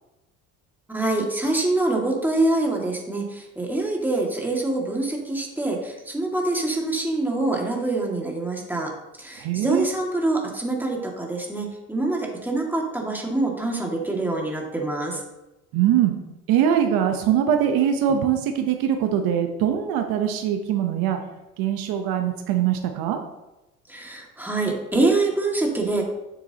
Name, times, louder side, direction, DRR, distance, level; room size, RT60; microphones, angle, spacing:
voice 1, 0.9-8.9 9.2-15.2 23.9-26.0, right 2 dB, 5° right, 0 dB, 2.1 m, -25 dB
voice 2, 9.4-9.8 15.7-16.2 16.5-21.2 21.6-23.2, right 9 dB, 75° right, 6 dB, 1.0 m, -22 dB
9.3 x 7.0 x 2.9 m, 0.99 s
supercardioid pair, 85°, 36 cm